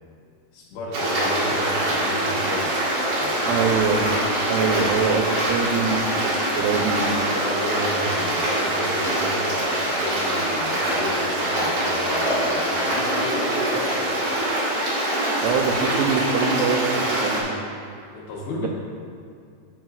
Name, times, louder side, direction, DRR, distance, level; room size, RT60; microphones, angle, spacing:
voice 1, 0.5-2.7 3.2-3.6 4.6-4.7 7.3-14.1 18.1-18.7, left 2 dB, 75° left, -4 dB, 3.2 m, -33 dB
Stream, 0.9-17.4, right 1 dB, 55° right, 2.3 m, -24 dB
sound 1, 3.3-16.4, equal, 70° right, 3.6 m, -42 dB
voice 2, 3.5-4.0 4.5-7.2 15.4-17.5 18.6-18.7, right 5 dB, 90° right, 4 dB, 3.1 m, -24 dB
15.0 x 5.7 x 2.4 m, 2.3 s
omnidirectional pair, 5.4 m